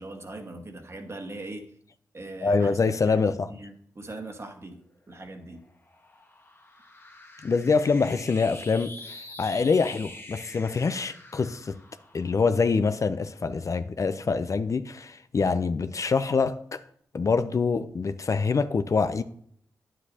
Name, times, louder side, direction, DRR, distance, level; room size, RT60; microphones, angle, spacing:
voice 1, 0.0-1.7 2.1-2.7 3.0-3.2 3.6-4.8 5.1-5.6, right 2 dB, 40° right, 1.4 m, -40 dB
voice 2, 2.4-3.5 7.4-11.8 12.1-16.8 17.1-19.2, left 4 dB, 45° left, 0.5 m, -25 dB
sound 1, 4.9-13.6, left 2 dB, 30° left, 1.3 m, -46 dB
9.8 x 7.4 x 2.8 m
supercardioid pair, 45°, 7 cm